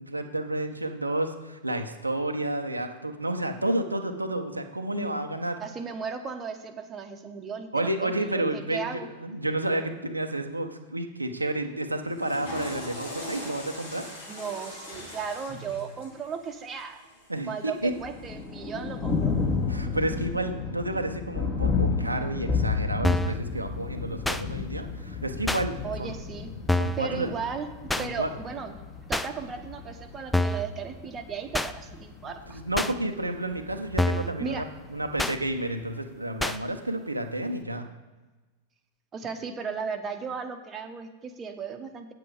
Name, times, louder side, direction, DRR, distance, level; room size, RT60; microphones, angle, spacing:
voice 1, 0.0-5.6 7.7-14.1 17.3-17.9 19.7-26.1 26.8-27.3 28.0-28.3 32.5-34.7 34.9-37.9, right 1 dB, 85° right, 5 dB, 0.8 m, -30 dB
voice 2, 5.6-9.1 14.3-17.0 17.5-19.3 25.8-26.5 27.0-27.7 28.0-28.7 29.1-32.6 34.4-34.7 39.1-42.1, right 6 dB, 25° right, 5 dB, 1.0 m, -36 dB
Water / Toilet flush, 12.0-18.3, left 1 dB, 65° left, 2.9 m, -41 dB
Thunder, 17.8-35.8, left 4 dB, 35° left, 2.3 m, -32 dB
sound 1, 23.0-23.4 24.2-24.4 25.5-25.6 26.7-27.0 27.9-28.1 29.1-29.3 30.3-30.7 31.5-31.7 32.8-32.9 34.0-34.3 35.2-35.4 36.4-36.6, left 1 dB, 5° left, 0.4 m, -26 dB
8.7 x 7.7 x 4.9 m, 1.2 s
figure-of-eight pair, 90°, 0 cm